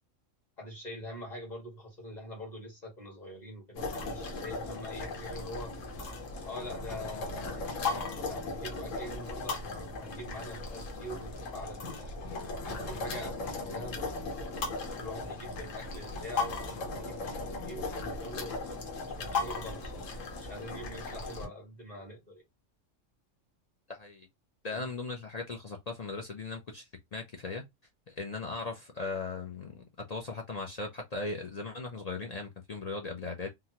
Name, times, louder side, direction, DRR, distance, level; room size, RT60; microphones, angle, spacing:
voice 1, 0.6-5.7 6.4-12.2 12.6-14.0 15.0-18.6 19.2-20.1 20.4-22.4 24.7-24.8, equal, 35° left, 1.7 m, -44 dB
sound 1, 3.7-21.5, left 3 dB, 80° left, 1.3 m, -37 dB
voice 2, 23.9-24.3 24.6-27.6 28.1-33.5, left 3 dB, 50° left, 0.4 m, -38 dB
3.7 x 2.1 x 2.8 m
omnidirectional pair, 1.3 m